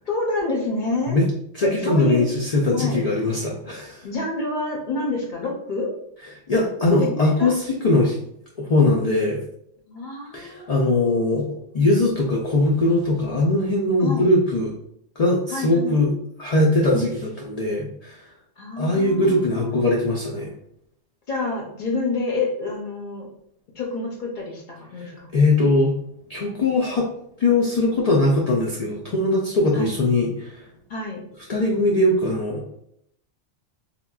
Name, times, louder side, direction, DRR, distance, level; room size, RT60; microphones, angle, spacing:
voice 1, 0.1-1.2 1.6-2.3 2.7-3.1 4.0-5.9 7.0-7.5 9.9-11.4 14.0-14.3 15.5-16.0 16.9-17.1 18.6-19.8 21.3-23.3 23.8-25.3 29.7-29.9 30.9-31.2, left 3 dB, 55° left, -1 dB, 0.6 m, -28 dB
voice 2, 1.5-4.0 6.5-8.2 8.6-9.4 10.3-14.7 15.2-16.1 16.4-18.2 18.8-20.5 25.0-25.9 26.3-27.1 27.4-30.6 31.5-32.8, left 2 dB, 90° left, -2 dB, 0.3 m, -21 dB
3.6 x 2.2 x 2.3 m, 0.71 s
omnidirectional pair, 1.2 m